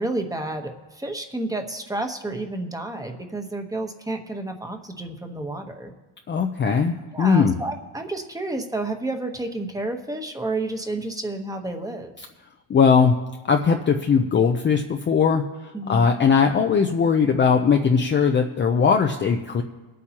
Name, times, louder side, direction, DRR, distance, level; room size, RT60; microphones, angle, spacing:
voice 1, 0.0-5.9 7.1-12.1 15.7-16.1, right 2 dB, 5° right, 4 dB, 1.2 m, -30 dB
voice 2, 6.3-7.5 12.7-13.2 13.5-15.4 15.9-19.6, left 6 dB, 25° left, 3 dB, 0.6 m, -19 dB
23.0 x 8.5 x 3.0 m, 1.2 s
cardioid pair, 120°, 47 cm